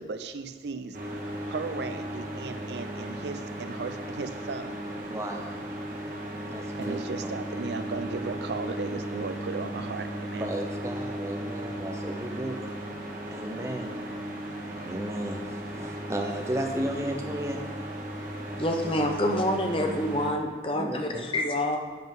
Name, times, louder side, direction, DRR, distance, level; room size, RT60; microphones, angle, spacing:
voice 1, 0.0-4.7 6.8-10.5, right 4 dB, 75° right, 9 dB, 0.5 m, -36 dB
sound 1, 0.9-20.3, right 1 dB, 50° right, 1.6 m, -36 dB
voice 2, 5.1-5.6 6.5-7.3 10.4-12.6 13.3-13.9 14.8-17.7 20.7-21.3, right 1 dB, 15° right, 3 dB, 0.7 m, -34 dB
voice 3, 18.6-21.8, left 1 dB, 30° left, 3 dB, 0.9 m, -27 dB
7.7 x 7.6 x 5.4 m, 1.4 s
head